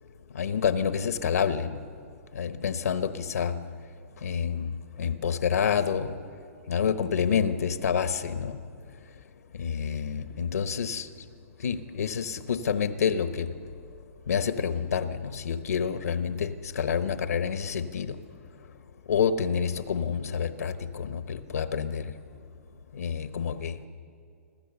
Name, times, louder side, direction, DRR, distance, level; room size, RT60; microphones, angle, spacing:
voice 1, 0.3-1.8 2.3-3.6 4.2-4.7 5.0-6.1 6.7-8.6 9.6-11.1 11.6-13.5 14.3-18.2 19.1-22.0 22.9-23.7, left 7 dB, 85° left, 11 dB, 1.1 m, -28 dB
26.5 x 14.0 x 7.0 m, 2.3 s
hypercardioid pair, 145°, 8 cm